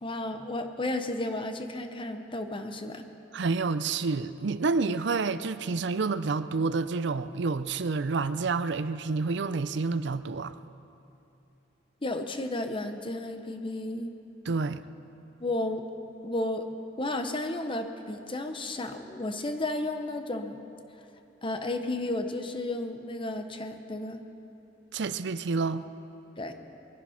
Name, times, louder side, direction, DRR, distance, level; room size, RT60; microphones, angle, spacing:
voice 1, 0.0-3.1 12.0-14.1 15.4-15.8 16.2-16.7 17.0-20.6 21.4-24.2 26.4-26.5, left 2 dB, 30° left, 0.9 m, -33 dB
voice 2, 3.3-10.5 14.5-14.8 24.9-25.8, right 4 dB, 65° right, 0.5 m, -29 dB
22.5 x 10.5 x 5.8 m
head